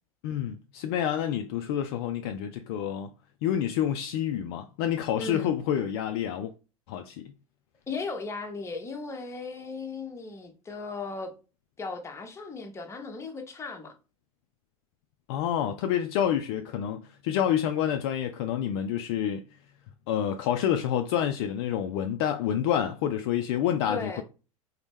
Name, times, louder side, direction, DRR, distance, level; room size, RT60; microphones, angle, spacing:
voice 1, 0.2-3.1 3.4-6.5 6.9-7.3 15.3-19.4 20.1-24.2, left 10 dB, 45° left, 0.4 m, -28 dB
voice 2, 5.2-5.5 7.9-11.3 11.8-14.0 23.9-24.2, left 4 dB, 15° left, 0.7 m, -36 dB
4.0 x 2.1 x 3.3 m
figure-of-eight pair, 80°, 18 cm